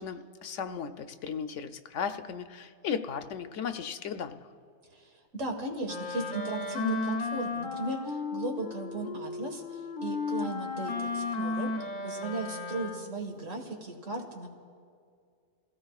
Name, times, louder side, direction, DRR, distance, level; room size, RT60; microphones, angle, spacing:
voice 1, 0.0-4.4, left 7 dB, 75° left, 8 dB, 1.0 m, -36 dB
voice 2, 4.9-14.5, right 2 dB, 80° right, 2 dB, 2.1 m, -37 dB
Wind instrument woodwind instrument, 5.8-13.3, left 3 dB, 45° left, 0.9 m, -34 dB
28.0 x 16.5 x 2.4 m, 2.2 s
omnidirectional pair, 1.3 m